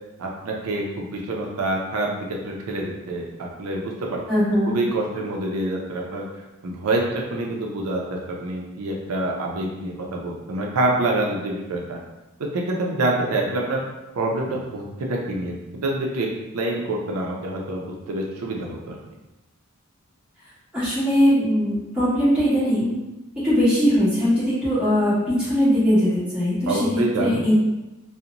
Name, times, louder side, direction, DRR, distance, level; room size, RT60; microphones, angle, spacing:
voice 1, 0.2-4.2 4.7-6.2 6.6-12.0 12.4-13.8 14.2-15.6 15.8-16.3 16.5-19.0 26.7-27.4, right 2 dB, 85° right, -1 dB, 0.4 m, -26 dB
voice 2, 4.3-4.7 20.7-22.9 23.4-26.8 27.2-27.5, equal, 5° right, -13 dB, 1.2 m, -20 dB
2.7 x 2.0 x 2.5 m, 1.0 s
head